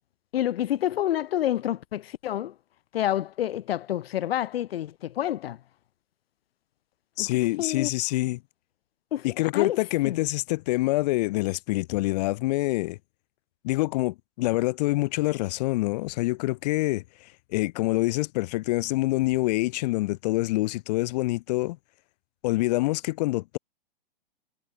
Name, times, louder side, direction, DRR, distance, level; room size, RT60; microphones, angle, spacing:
voice 1, 0.3-2.5 2.9-5.6 7.2-7.3 7.6-7.9 9.1-9.3 9.5-10.2, left 12 dB, 85° left, 0.5 m, -28 dB
voice 2, 7.2-8.4 9.2-13.0 13.6-21.8 22.4-23.6, left 20 dB, 45° left, 0.7 m, -26 dB
hypercardioid pair, 135°, 29 cm